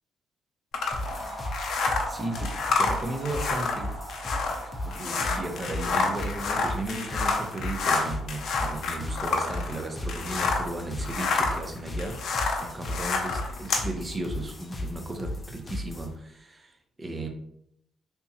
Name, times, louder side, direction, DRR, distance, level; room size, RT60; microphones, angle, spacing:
sound 1, 0.7-10.7 11.0-13.9, left 4 dB, 70° left, 0.6 m, -28 dB
sound 2, 0.9-16.2, left 1 dB, 30° left, 0.6 m, -36 dB
sound 3, 1.0-15.5, equal, 50° right, 1.3 m, -45 dB
voice 1, 2.1-4.0 4.6-12.2 12.6-17.3, right 2 dB, 25° right, 4 dB, 0.6 m, -35 dB
3.4 x 2.8 x 2.7 m, 0.74 s
cardioid pair, 90°, 0 cm